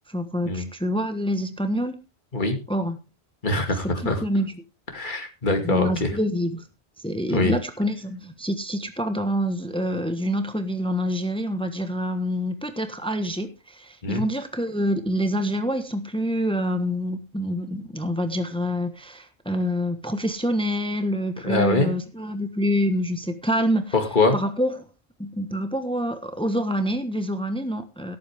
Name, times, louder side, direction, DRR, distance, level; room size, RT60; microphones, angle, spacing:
voice 1, 0.1-2.0 2.7-3.0 4.0-4.5 5.6-6.7 7.0-23.9 24.3-24.8 25.2-28.2, equal, 5° left, 1.3 m, -26 dB
voice 2, 3.4-4.2 4.9-6.1 7.3-7.5 14.0-14.2 21.4-22.0 23.9-24.4, left 2 dB, 50° left, 2.5 m, -23 dB
17.5 x 8.7 x 3.6 m
omnidirectional pair, 1.1 m